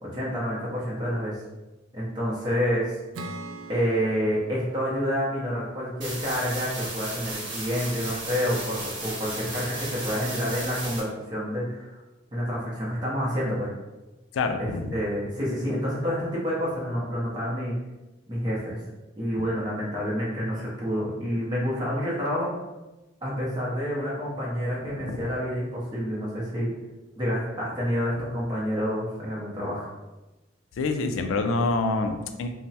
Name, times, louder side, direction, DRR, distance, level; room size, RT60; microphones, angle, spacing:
voice 1, 0.0-1.4 1.9-3.0 3.7-11.9 12.3-13.7 14.6-17.8 18.3-18.8 19.2-22.6 23.2-26.7 27.2-29.9, equal, 20° right, -6 dB, 0.6 m, -28 dB
Acoustic guitar / Strum, 3.1-6.6, right 2 dB, 80° right, 0.3 m, -43 dB
sound 1, 6.0-11.0, right 2 dB, 60° right, 0.8 m, -35 dB
voice 2, 14.3-14.9 25.1-25.2 30.8-32.5, left 3 dB, 80° left, 6 dB, 0.3 m, -26 dB
3.2 x 2.0 x 2.7 m, 1.1 s
head